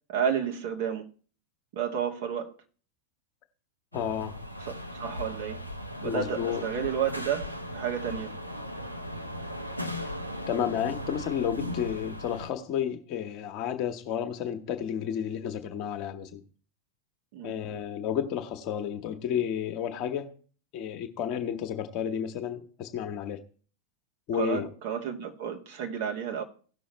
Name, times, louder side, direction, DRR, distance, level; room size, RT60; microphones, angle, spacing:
voice 1, 0.1-1.1 1.7-2.5 4.7-5.6 6.0-7.5 7.7-8.3 17.3-17.5 24.3-26.4, right 8 dB, 50° right, 1.7 m, -31 dB
voice 2, 3.9-4.4 6.0-6.6 10.5-16.4 17.4-20.3 20.7-23.4 24.3-24.7, left 9 dB, 40° left, 1.2 m, -31 dB
sound 1, 3.9-12.5, equal, 90° right, 0.9 m, -37 dB
17.0 x 6.1 x 3.3 m
figure-of-eight pair, 90°, 0 cm